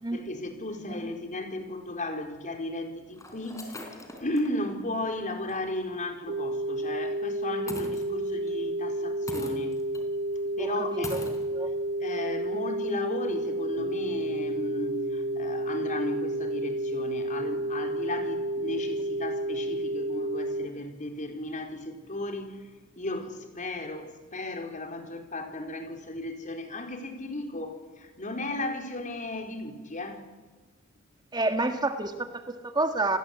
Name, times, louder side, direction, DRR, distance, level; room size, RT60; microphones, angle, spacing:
voice 1, 0.1-3.8 4.2-9.8 10.6-11.3 12.0-22.7 22.9-30.3, left 2 dB, 40° left, 4 dB, 4.4 m, -35 dB
voice 2, 0.7-1.1 10.6-11.2 11.5-11.7 31.3-33.2, right 2 dB, 20° right, 7 dB, 1.6 m, -29 dB
sound 1, 1.6-1.7 2.5-2.6 3.1-4.6 5.0-5.1 5.5-5.6 7.7-8.5 9.3-10.0 10.3-10.4 11.0-11.5, left 2 dB, 15° left, 4.3 m, -41 dB
sound 2, 6.3-20.7, right 1 dB, 60° right, 0.9 m, -31 dB
sound 3, 13.8-23.9, left 1 dB, 85° left, 2.6 m, -52 dB
30.0 x 21.0 x 8.4 m, 1.4 s
head